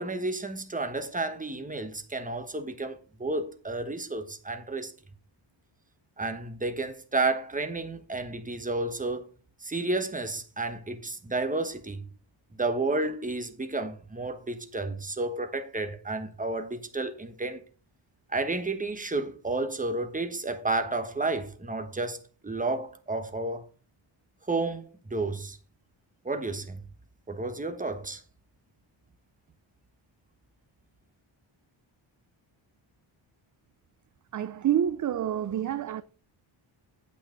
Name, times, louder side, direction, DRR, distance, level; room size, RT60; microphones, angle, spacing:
voice 1, 0.0-4.9 6.2-9.3 9.6-12.1 12.6-17.6 18.3-23.6 24.5-25.6 26.2-26.9 27.3-28.2, right 2 dB, 15° right, 1.2 m, -31 dB
voice 2, 34.3-36.0, right 10 dB, 40° right, 0.4 m, -27 dB
9.2 x 7.8 x 3.8 m
wide cardioid pair, 130°, 48 cm